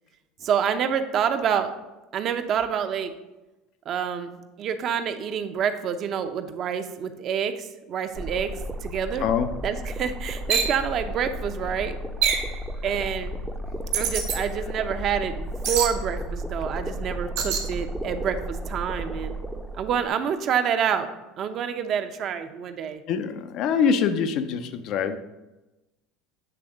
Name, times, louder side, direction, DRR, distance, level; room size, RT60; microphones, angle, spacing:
voice 1, 0.4-1.7 2.1-3.1 3.9-8.6 8.8-9.3 9.6-12.0 12.8-13.4 13.9-19.3 19.8-21.1 21.4-23.0, right 8 dB, 50° right, 8 dB, 0.6 m, -27 dB
sound 1, 8.1-20.1, equal, 10° right, 0.6 m, -33 dB
sound 2, 10.5-10.8 12.2-12.5 13.9-14.4 15.6-15.9 17.4-17.7, right 7 dB, 75° right, 1.3 m, -24 dB
voice 2, 23.1-25.2, left 6 dB, 60° left, 10 dB, 0.5 m, -24 dB
8.0 x 3.5 x 4.9 m, 1.0 s
supercardioid pair, 95°, 0 cm